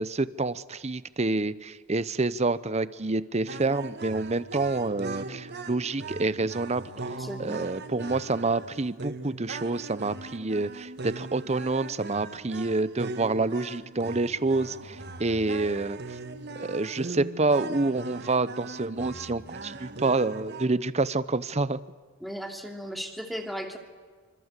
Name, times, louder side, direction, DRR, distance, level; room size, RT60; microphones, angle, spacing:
voice 1, 0.0-6.8 7.4-16.0 16.6-21.8, right 3 dB, 30° right, 16 dB, 0.8 m, -28 dB
sound 1, 3.5-20.7, right 3 dB, 55° right, 1.5 m, -39 dB
voice 2, 7.2-7.6 22.2-23.8, equal, ahead, 3 dB, 2.8 m, -36 dB
26.5 x 25.5 x 8.3 m, 1.5 s
head